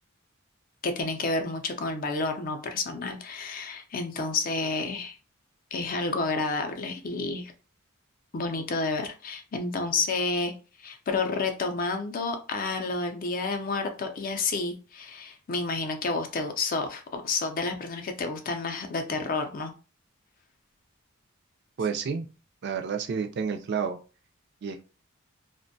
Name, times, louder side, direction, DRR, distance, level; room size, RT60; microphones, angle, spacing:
voice 1, 0.8-5.2 5.7-7.5 8.3-10.5 10.8-19.7, left 3 dB, 40° left, 5 dB, 0.4 m, -30 dB
voice 2, 21.8-22.3 22.6-24.0 24.6-24.8, right 6 dB, 50° right, 6 dB, 0.3 m, -30 dB
2.5 x 2.1 x 2.6 m, 0.34 s
head